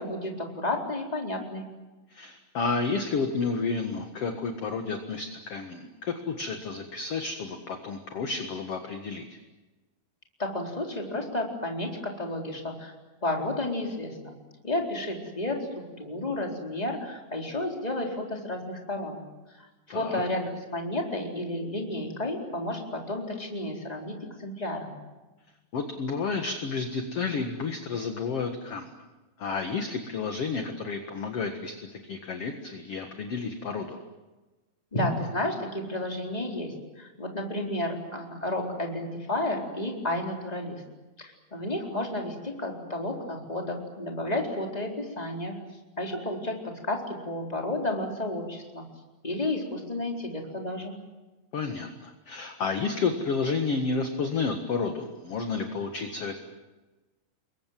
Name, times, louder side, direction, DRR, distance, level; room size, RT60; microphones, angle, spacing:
voice 1, 0.0-1.6 10.4-12.9 13.2-14.3 14.6-19.2 19.6-24.9 34.9-40.8 41.2-45.6 46.0-48.8 49.2-51.0, left 1 dB, 10° left, 1 dB, 3.9 m, -32 dB
voice 2, 2.1-9.3 19.9-20.2 25.7-28.9 29.4-34.0 51.5-56.4, left 4 dB, 50° left, 5 dB, 2.3 m, -31 dB
28.5 x 23.0 x 7.6 m, 1.2 s
omnidirectional pair, 4.1 m